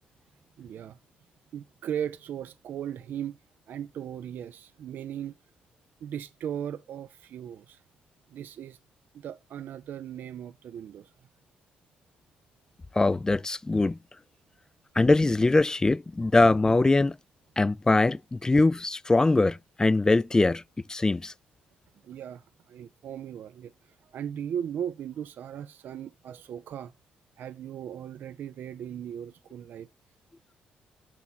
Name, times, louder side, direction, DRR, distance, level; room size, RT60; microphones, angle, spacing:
voice 1, 0.6-1.0 1.5-3.4 3.7-5.3 6.0-7.8 8.3-8.8 9.1-11.1 22.0-26.9 27.4-29.9, right 9 dB, 65° right, 0.4 m, -37 dB
voice 2, 13.0-14.0 15.0-17.2 17.6-20.6 20.9-21.3, left 2 dB, 20° left, 0.3 m, -22 dB
7.2 x 5.9 x 4.1 m
supercardioid pair, 60°, 3 cm